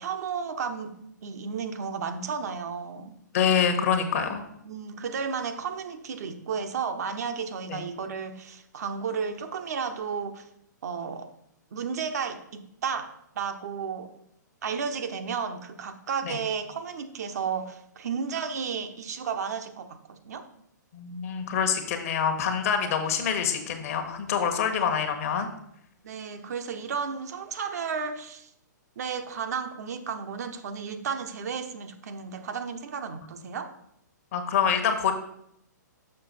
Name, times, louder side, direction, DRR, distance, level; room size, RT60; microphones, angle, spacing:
voice 1, 0.0-3.2 4.6-10.5 10.8-11.3 11.7-14.1 14.6-20.5 26.0-28.5 29.0-33.7, right 6 dB, 55° right, 7 dB, 0.7 m, -33 dB
voice 2, 3.3-4.4 7.7-7.8 16.2-16.4 20.9-25.5 34.3-35.1, left 7 dB, 50° left, 6 dB, 1.1 m, -26 dB
6.7 x 5.6 x 4.1 m, 0.74 s
figure-of-eight pair, 120°, 10 cm